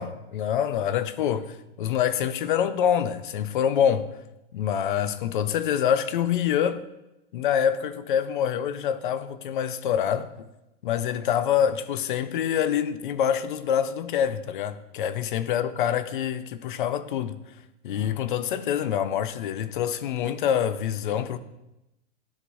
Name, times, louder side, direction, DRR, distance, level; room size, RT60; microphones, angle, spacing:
voice 1, 0.0-4.2 4.5-6.8 7.3-10.3 10.8-17.4 17.8-21.4, left 9 dB, 45° left, 0.4 m, -26 dB
13.0 x 4.7 x 2.6 m
supercardioid pair, 180°, 36 cm